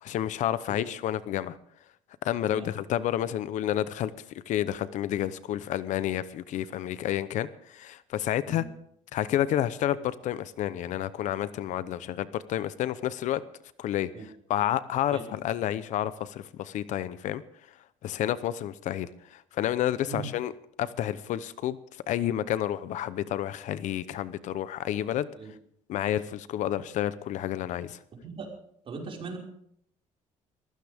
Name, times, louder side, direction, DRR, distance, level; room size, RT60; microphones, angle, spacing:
voice 1, 0.0-1.6 2.2-4.1 4.5-8.6 9.1-13.4 13.8-17.4 17.7-17.8 18.0-20.5 20.8-25.3 25.9-28.0, left 11 dB, 65° left, 16 dB, 0.8 m, -30 dB
voice 2, 28.8-29.4, right 4 dB, 45° right, -1 dB, 5.4 m, -39 dB
22.0 x 16.0 x 3.6 m, 0.68 s
cardioid pair, 115°, 13 cm